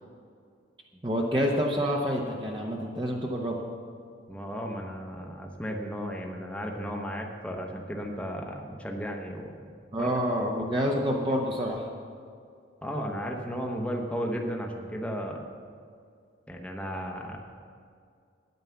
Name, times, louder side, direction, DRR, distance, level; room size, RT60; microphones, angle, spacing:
voice 1, 1.0-3.6 9.9-11.9, equal, 25° right, -1 dB, 0.8 m, -28 dB
voice 2, 4.3-9.5 10.0-10.1 10.6-10.7 12.8-15.5 16.5-17.4, equal, 5° left, 1 dB, 0.9 m, -34 dB
9.7 x 9.3 x 7.0 m, 2.3 s
head